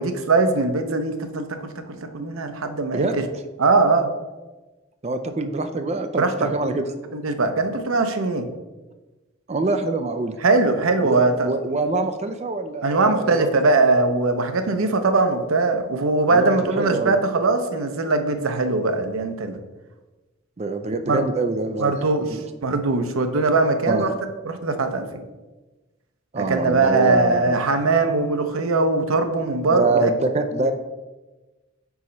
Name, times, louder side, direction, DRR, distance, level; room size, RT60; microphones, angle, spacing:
voice 1, 0.0-3.3 3.6-4.1 6.2-6.5 7.1-8.5 10.4-11.5 12.8-19.6 21.0-21.2 21.8-22.3 22.6-24.1 24.4-25.2 26.4-30.1, right 3 dB, 85° right, 7 dB, 0.6 m, -21 dB
voice 2, 2.9-3.2 5.0-6.9 9.5-10.4 11.0-13.7 16.3-17.2 20.6-21.9 22.3-22.4 23.9-24.0 26.3-27.5 29.7-30.7, right 3 dB, 30° right, 7 dB, 0.4 m, -25 dB
4.8 x 4.2 x 5.1 m, 1.2 s
head